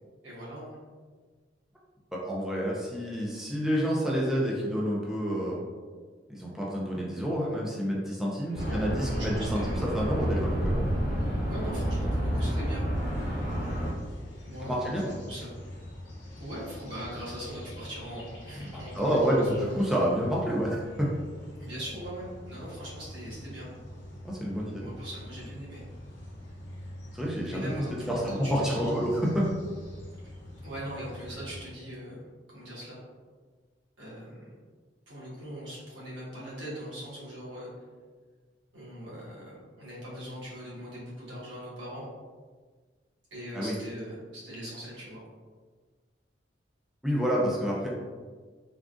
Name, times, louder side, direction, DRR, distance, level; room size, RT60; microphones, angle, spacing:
voice 1, 0.2-0.8 8.4-9.8 11.5-12.8 14.4-15.5 16.4-19.3 21.6-23.7 24.8-25.8 27.5-28.9 30.6-33.0 34.0-34.5 35.1-37.7 38.7-42.1 43.3-45.2, equal, 85° right, -8 dB, 1.3 m, -40 dB
voice 2, 2.1-5.7 6.3-10.8 14.6-15.1 18.5-18.7 18.9-21.1 24.2-24.8 27.2-29.4 43.5-43.7 47.0-47.9, equal, 5° right, -5 dB, 0.4 m, -28 dB
sound 1, 8.5-13.9, equal, 25° right, 1.3 m, -29 dB
sound 2, 12.9-31.6, left 1 dB, 90° left, 0.8 m, -45 dB
3.5 x 2.4 x 2.4 m, 1.5 s
head